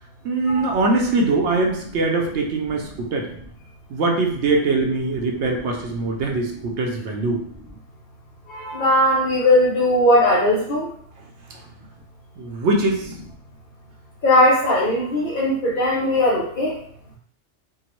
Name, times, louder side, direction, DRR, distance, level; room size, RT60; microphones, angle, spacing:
voice 1, 0.2-3.3 3.9-7.4 11.5-11.6 12.4-13.2, right 3 dB, 70° right, 1 dB, 0.8 m, -22 dB
voice 2, 8.5-10.8 14.2-16.7, left 1 dB, 55° left, -5 dB, 0.7 m, -18 dB
3.6 x 2.1 x 3.0 m, 0.62 s
omnidirectional pair, 1.3 m